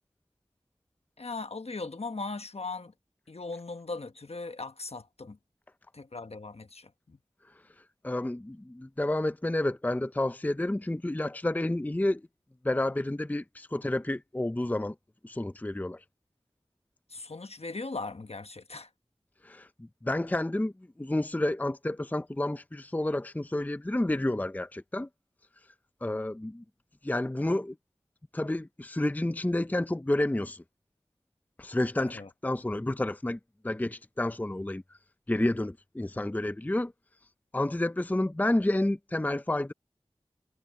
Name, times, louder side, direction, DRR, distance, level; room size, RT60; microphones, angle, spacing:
voice 1, 1.2-2.9 3.3-5.4 5.9-7.2 17.1-18.9 32.1-32.3, left 3 dB, 65° left, 1.1 m, -39 dB
voice 2, 8.0-12.2 12.6-14.9 15.2-16.0 19.4-19.7 20.0-20.7 21.0-25.1 26.0-26.6 27.0-27.8 28.3-30.6 31.6-33.4 33.6-34.8 35.3-36.9 37.5-39.7, left 1 dB, 15° left, 0.5 m, -30 dB
wide cardioid pair, 55°, 11 cm